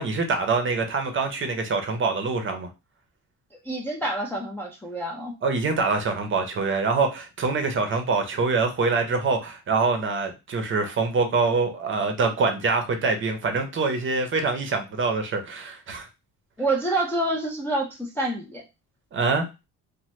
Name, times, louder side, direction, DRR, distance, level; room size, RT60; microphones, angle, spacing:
voice 1, 0.0-2.7 5.4-16.1 19.1-19.5, right 4 dB, 35° right, 0.6 m, -25 dB
voice 2, 3.6-5.3 16.6-18.6, right 2 dB, 5° left, 0.3 m, -27 dB
2.9 x 2.1 x 3.1 m
cardioid pair, 145°, 34 cm